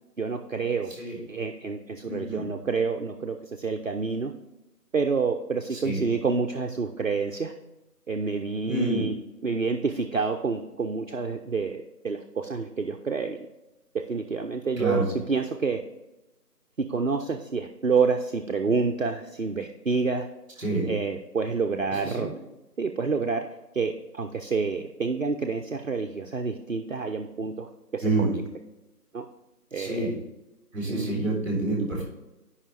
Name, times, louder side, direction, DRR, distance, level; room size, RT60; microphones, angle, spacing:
voice 1, 0.2-0.9 1.3-4.3 4.9-7.5 8.1-9.1 9.4-13.4 14.1-15.8 16.8-20.3 20.9-22.3 22.8-23.4 23.7-28.4 29.1-29.2 29.7-30.1 30.9-31.2, right 4 dB, 55° right, 3 dB, 0.6 m, -28 dB
voice 2, 2.0-2.5 5.7-6.0 8.7-9.0 14.8-15.1 20.6-20.9 21.9-22.3 28.0-28.4 29.7-30.1 30.7-32.0, right 2 dB, 15° right, -3 dB, 3.1 m, -28 dB
9.8 x 5.6 x 3.3 m, 0.97 s
figure-of-eight pair, 170°, 48 cm